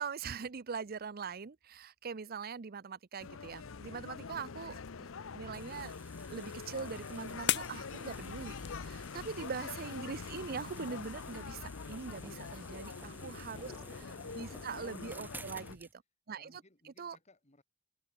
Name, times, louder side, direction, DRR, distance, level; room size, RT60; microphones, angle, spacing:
voice 1, 0.0-5.9 6.3-13.7 14.3-15.9 16.3-16.5 17.0-17.2, right 5 dB, 50° right, 0.6 m, -42 dB
sound 1, 3.2-15.8, left 5 dB, 80° left, 0.7 m, -45 dB
sound 2, 4.6-9.7, left 11 dB, 60° left, 1.1 m, -42 dB
sound 3, 5.5-15.9, right 2 dB, 10° right, 2.5 m, -54 dB
voice 2, 16.4-17.6, left 2 dB, 35° left, 5.5 m, -67 dB
head